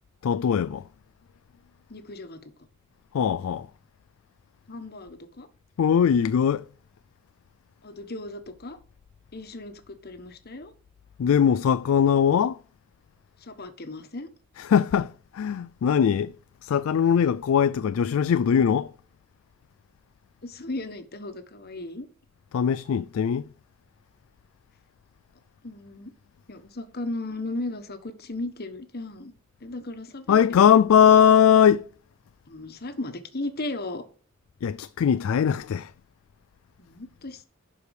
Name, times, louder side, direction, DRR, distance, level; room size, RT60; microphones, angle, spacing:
voice 1, 0.2-0.9 3.1-3.7 5.8-6.7 11.2-12.6 14.6-16.3 16.6-18.9 22.5-23.5 30.3-31.9 34.6-35.9, left 8 dB, 80° left, 0.3 m, -20 dB
voice 2, 1.9-2.5 4.7-5.5 7.8-8.8 9.3-10.7 13.4-14.3 20.4-22.1 25.6-26.1 26.5-29.3 29.6-30.6 32.5-34.0 36.8-37.4, left 2 dB, 50° left, 1.3 m, -36 dB
11.5 x 4.9 x 4.8 m
head